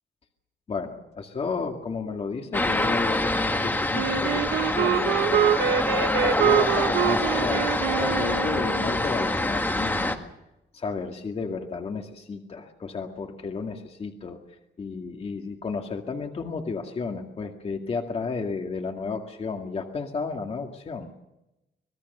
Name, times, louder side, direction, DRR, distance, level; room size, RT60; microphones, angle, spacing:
voice 1, 0.7-10.2 10.7-14.4 14.8-21.1, left 4 dB, 35° left, 3 dB, 2.1 m, -33 dB
sound 1, 2.5-10.2, left 2 dB, 10° left, 1.8 m, -26 dB
Wind instrument woodwind instrument, 3.9-9.0, right 9 dB, 85° right, 1.3 m, -25 dB
26.0 x 20.0 x 6.8 m, 0.93 s
wide cardioid pair, 155°, 17 cm